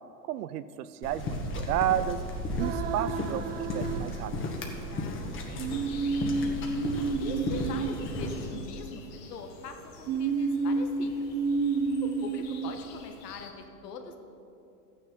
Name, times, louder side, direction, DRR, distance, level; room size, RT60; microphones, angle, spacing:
voice 1, 0.2-2.2 2.6-4.6, right 11 dB, 70° right, 15 dB, 0.6 m, -32 dB
sound 1, 1.0-8.5, left 1 dB, 25° left, 1.5 m, -34 dB
sound 2, 2.6-4.7 5.6-9.3 10.1-12.8, right 4 dB, 25° right, 0.4 m, -31 dB
voice 2, 4.9-6.6 7.2-9.0 9.3-11.3 12.0-14.2, left 5 dB, 80° left, 5 dB, 1.3 m, -43 dB
sound 3, 5.7-13.5, left 6 dB, 50° left, 1.4 m, -51 dB
13.0 x 9.3 x 3.8 m, 2.8 s
hypercardioid pair, 110°, 47 cm